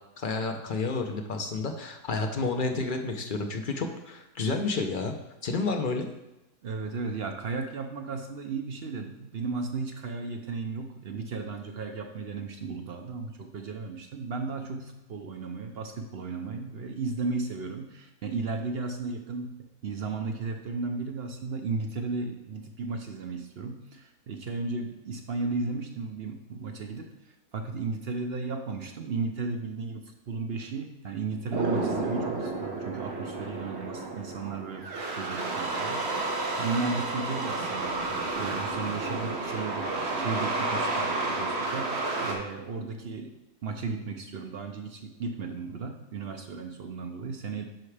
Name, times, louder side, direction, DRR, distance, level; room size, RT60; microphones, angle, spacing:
voice 1, 0.2-5.2 5.4-6.1, left 3 dB, 50° left, 4 dB, 0.6 m, -30 dB
voice 2, 6.6-19.5 19.8-27.1 27.5-36.1 36.6-43.3 43.6-47.6, right 4 dB, 60° right, 4 dB, 0.6 m, -35 dB
sound 1, 31.5-42.3, right 3 dB, 45° right, 1.2 m, -31 dB
10.5 x 4.7 x 3.3 m, 0.96 s
omnidirectional pair, 1.7 m